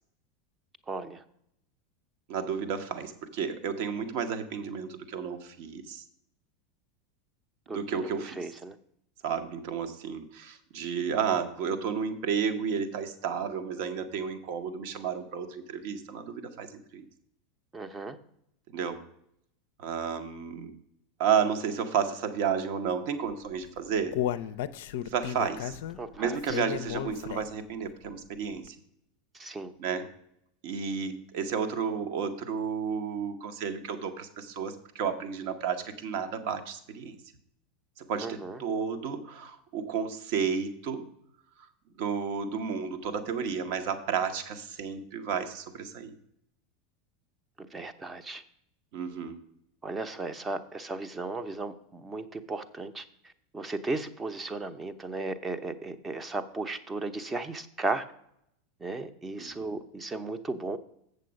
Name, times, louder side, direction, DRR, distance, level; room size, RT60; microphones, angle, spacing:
voice 1, 0.9-1.2 7.7-8.8 17.7-18.2 26.0-26.6 29.3-29.7 38.2-38.6 47.6-48.4 49.8-53.1 53.5-58.1 58.8-60.8, right 3 dB, 15° right, 10 dB, 0.7 m, -35 dB
voice 2, 2.3-6.0 7.7-8.4 9.2-17.0 18.7-19.0 19.8-20.7 21.2-24.1 25.0-25.8 26.2-28.8 29.8-30.1 30.6-37.2 38.0-41.1 42.0-46.1 48.9-49.4 59.4-59.7, right 6 dB, 55° right, 8 dB, 1.0 m, -32 dB
Human voice, 23.5-27.7 28.1-28.2 28.6-28.7, left 11 dB, 65° left, 0.4 m, -34 dB
7.6 x 6.7 x 5.2 m, 0.74 s
figure-of-eight pair, 85°, 0 cm